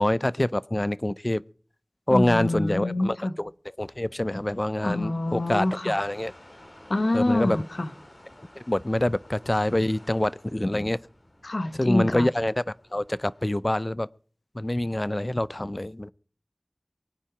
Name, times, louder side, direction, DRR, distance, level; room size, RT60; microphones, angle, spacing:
voice 1, 0.0-1.4 2.1-3.5 3.8-6.3 7.1-7.6 8.6-11.0 11.8-12.6 12.9-14.1 14.5-16.1, left 1 dB, 35° left, 0.6 m, -26 dB
voice 2, 2.1-3.3 4.8-5.9 6.9-7.9 11.4-12.3, left 2 dB, 90° left, 1.2 m, -26 dB
sound 1, 3.8-13.6, left 1 dB, 50° left, 5.7 m, -53 dB
24.0 x 9.0 x 4.9 m
wide cardioid pair, 40°, 0 cm